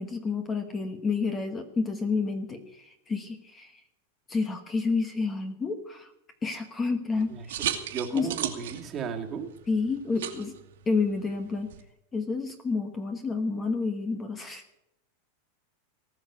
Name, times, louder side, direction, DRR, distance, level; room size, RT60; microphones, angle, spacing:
voice 1, 0.0-3.8 4.3-6.1 6.4-7.6 8.1-8.3 9.7-10.5 10.9-11.7 12.1-14.6, left 4 dB, 15° left, 8 dB, 1.2 m, -29 dB
sound 1, 7.1-11.8, right 10 dB, 85° right, 2.1 m, -37 dB
voice 2, 7.9-9.5, right 6 dB, 25° right, 3 dB, 1.9 m, -34 dB
19.0 x 6.5 x 9.6 m, 0.85 s
supercardioid pair, 160°, 0 cm